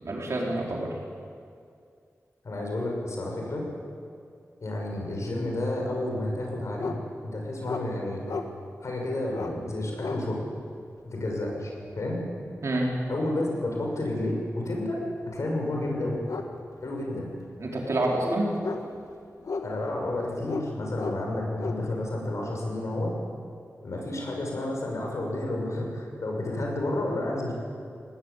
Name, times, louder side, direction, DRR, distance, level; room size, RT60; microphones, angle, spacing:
voice 1, 0.0-0.9 12.6-12.9 17.6-18.5, right 1 dB, 60° right, -2 dB, 4.7 m, -27 dB
voice 2, 2.4-3.6 4.6-6.9 7.2-8.2 8.8-10.4 11.0-11.7 11.9-12.2 13.1-15.0 15.3-16.2 16.8-17.3 19.6-23.1 23.8-27.5, left 1 dB, 65° left, 0 dB, 6.5 m, -30 dB
sound 1, 6.8-7.0 7.6-7.9 8.3-8.5 9.3-9.5 10.0-10.2 12.2-12.5 15.3-15.4 16.3-16.5 16.8-16.9 17.3-17.6 18.2-19.0 19.4-20.0 20.4-20.7 21.0-21.8, left 4 dB, 80° left, 1.8 m, -33 dB
21.0 x 18.5 x 8.6 m, 2.4 s
wide cardioid pair, 85°, 5 cm